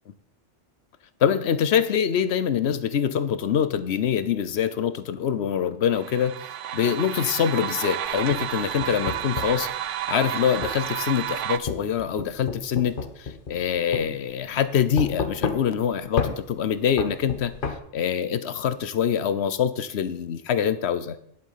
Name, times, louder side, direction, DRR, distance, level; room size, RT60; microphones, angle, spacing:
voice 1, 1.2-6.3 6.7-17.5 17.9-21.2, left 8 dB, 65° left, 13 dB, 1.0 m, -25 dB
sound 1, 5.9-11.6, right 11 dB, 80° right, 0.9 m, -31 dB
sound 2, 8.3-9.6 10.6-10.8 11.7-13.7 13.9-14.1 15.0-15.8 16.2-16.4 17.0-17.8, left 5 dB, 50° left, 1.1 m, -29 dB
10.5 x 7.5 x 5.6 m, 0.70 s
omnidirectional pair, 1.2 m